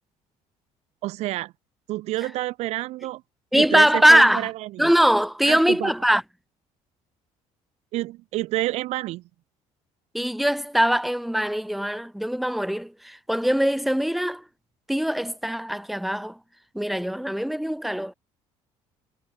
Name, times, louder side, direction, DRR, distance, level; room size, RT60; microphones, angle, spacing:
voice 1, 1.0-1.5 1.9-3.2 3.5-4.9 5.4-5.9 7.9-9.2, right 17 dB, 60° right, 0.7 m, -29 dB
voice 2, 3.5-4.5 4.8-6.2 10.1-14.4 14.9-16.4 16.7-18.1, equal, ahead, 1.4 m, -21 dB
cardioid pair, 160°, 12 cm